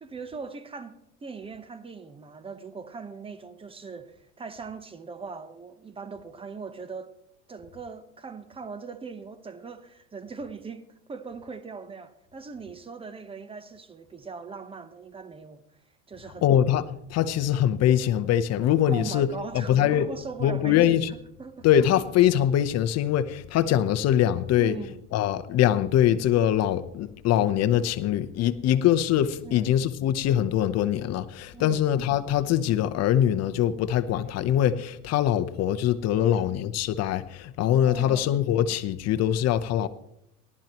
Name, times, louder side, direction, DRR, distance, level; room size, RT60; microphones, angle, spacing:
voice 1, 0.0-7.1 7.5-15.6 16.1-16.5 18.9-21.7 24.6-25.0 29.4-29.8 31.5-31.9 36.2-36.5 37.7-38.4, right 5 dB, 15° right, 1.0 m, -40 dB
voice 2, 16.4-21.1 21.6-39.9, left 10 dB, 45° left, 0.8 m, -23 dB
18.5 x 12.0 x 3.0 m
supercardioid pair, 120°, 37 cm